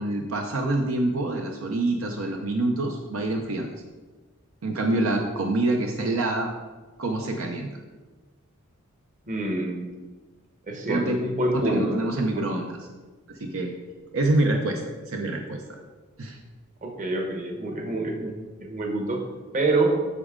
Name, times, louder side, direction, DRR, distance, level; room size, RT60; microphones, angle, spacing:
voice 1, 0.0-3.7 4.6-6.5 7.0-7.7 10.9-11.2 11.5-12.8 13.3-13.7 14.1-15.8 16.2-16.4, right 2 dB, 70° right, 2 dB, 0.7 m, -26 dB
voice 2, 9.3-9.8 10.7-12.7 16.8-19.2 19.5-19.9, right 2 dB, 35° right, 2 dB, 1.1 m, -27 dB
8.2 x 6.3 x 3.8 m, 1.3 s
head